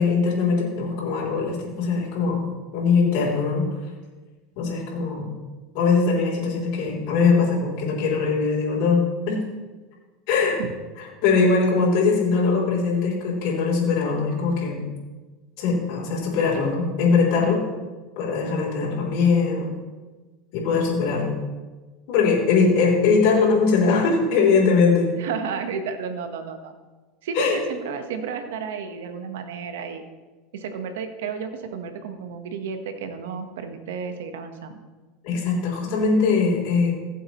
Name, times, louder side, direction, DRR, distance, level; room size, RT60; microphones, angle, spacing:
voice 1, 0.0-2.5 2.7-3.6 4.6-5.3 5.7-9.0 9.3-9.4 10.3-10.6 11.2-14.8 15.6-17.6 18.2-19.7 20.5-21.3 22.1-25.1 27.3-27.6 35.2-37.0, left 4 dB, 70° left, -4 dB, 3.4 m, -21 dB
voice 2, 25.2-26.7 27.2-30.0 30.5-34.8, right 6 dB, 85° right, 7 dB, 1.2 m, -32 dB
16.0 x 7.5 x 3.1 m, 1.3 s
supercardioid pair, 115°, 0 cm